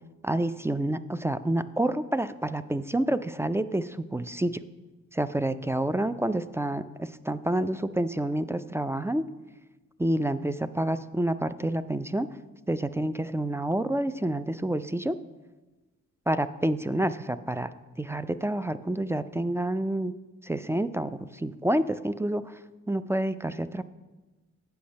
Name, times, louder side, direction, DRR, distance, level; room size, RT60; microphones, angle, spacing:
voice 1, 0.2-4.6 5.1-9.3 10.0-12.3 12.7-15.2 16.3-17.7 18.0-20.1 20.4-22.6 22.9-23.8, right 1 dB, 10° right, 13 dB, 0.3 m, -28 dB
8.4 x 5.7 x 5.2 m, 1.2 s
supercardioid pair, 50°, 35 cm